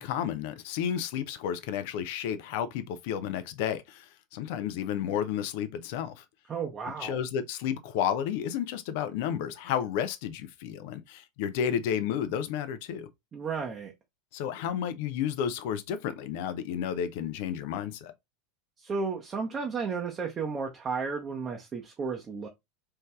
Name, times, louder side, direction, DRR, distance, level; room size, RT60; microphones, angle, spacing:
voice 1, 0.0-6.2 7.0-13.1 14.3-18.1, left 9 dB, 50° left, 0.5 m, -32 dB
voice 2, 6.5-7.2 13.3-13.9 18.8-22.5, right 5 dB, 25° right, 0.8 m, -33 dB
4.3 x 3.2 x 2.3 m
figure-of-eight pair, 80°, 0 cm